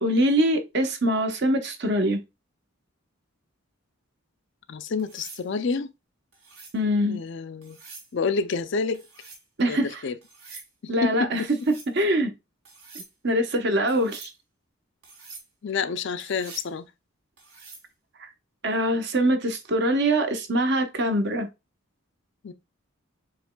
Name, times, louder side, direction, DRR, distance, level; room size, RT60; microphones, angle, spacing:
voice 1, 0.0-2.2 6.7-7.2 9.6-10.0 10.9-12.3 13.2-14.3 18.6-21.5, right 1 dB, 50° right, 0.9 m, -23 dB
voice 2, 4.7-5.9 7.1-7.8 8.1-9.0 9.6-10.2 11.0-11.5 15.6-16.9 22.4-22.5, left 4 dB, 55° left, 0.4 m, -28 dB
sound 1, 5.0-5.5 6.3-6.8 7.6-8.1 8.9-9.4 10.2-10.7 11.4-11.9 12.6-13.1 13.9-14.3 15.0-15.5 16.2-16.7 17.4-17.9 19.8-20.1, right 4 dB, 90° right, 2.5 m, -45 dB
7.0 x 3.1 x 2.2 m
head